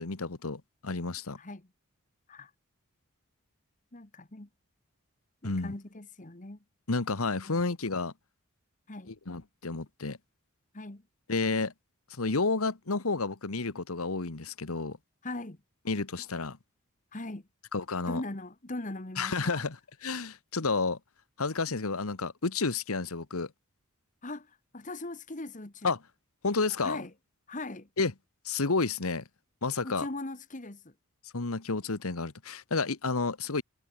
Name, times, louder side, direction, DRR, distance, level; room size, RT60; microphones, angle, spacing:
voice 1, 0.0-1.4 5.4-5.7 6.9-8.1 9.3-10.2 11.3-11.7 12.2-15.0 15.9-16.6 17.7-18.2 19.2-19.8 20.0-21.0 21.4-23.5 25.8-26.0 26.4-27.0 28.0-28.1 28.4-29.2 29.6-30.1 31.3-33.6, left 3 dB, 75° left, 1.4 m, -30 dB
voice 2, 1.4-1.7 2.3-2.5 3.9-4.5 5.4-6.6 7.5-7.6 8.9-9.1 10.7-11.1 15.2-15.6 17.1-17.5 18.1-19.7 24.2-25.9 26.8-27.1 27.5-27.9 29.8-30.9, left 2 dB, 35° left, 1.5 m, -40 dB
head